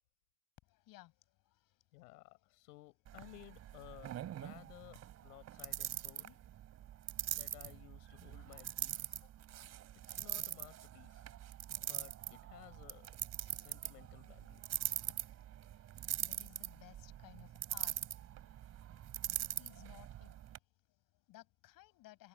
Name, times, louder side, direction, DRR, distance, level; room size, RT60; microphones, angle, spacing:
voice 1, 0.6-1.8 15.7-18.0 18.6-19.0 19.4-22.3, left 17 dB, 45° left, 6.3 m, -60 dB
voice 2, 1.9-6.4 7.3-9.3 10.1-11.3 11.8-13.2 13.4-14.7, left 21 dB, 70° left, 5.7 m, -57 dB
sound 1, 3.1-20.6, right 12 dB, 35° right, 3.4 m, -43 dB
supercardioid pair, 130°, 47 cm